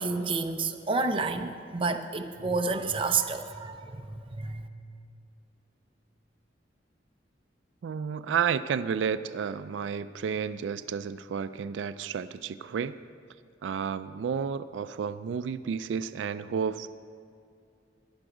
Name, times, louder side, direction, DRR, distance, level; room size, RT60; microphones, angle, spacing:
voice 1, 0.0-4.7, right 4 dB, 30° right, 6 dB, 0.6 m, -30 dB
voice 2, 7.8-13.0 13.6-16.9, right 7 dB, 90° right, 13 dB, 0.3 m, -31 dB
14.0 x 9.9 x 4.9 m, 2.5 s
head